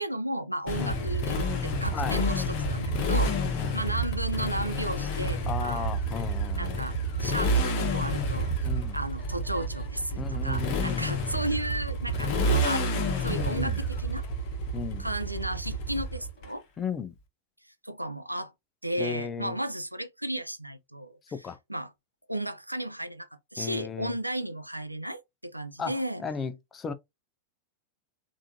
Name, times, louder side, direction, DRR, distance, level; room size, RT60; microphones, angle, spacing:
voice 1, 0.0-5.9 6.6-8.6 8.9-14.3 15.0-16.7 17.8-18.5 18.8-21.2 21.7-21.9 22.3-26.2, right 1 dB, 90° right, 0.4 m, -34 dB
Motorcycle, 0.7-16.5, equal, 45° left, 1.0 m, -29 dB
voice 2, 1.9-2.2 3.2-3.8 5.5-6.9 8.6-9.0 10.2-11.2 13.3-13.8 14.7-15.1 16.8-17.1 19.0-19.6 21.3-21.6 23.6-24.1 25.8-25.9 26.2-26.9, left 6 dB, 25° left, 0.5 m, -35 dB
3.5 x 2.6 x 2.7 m
figure-of-eight pair, 90°, 0 cm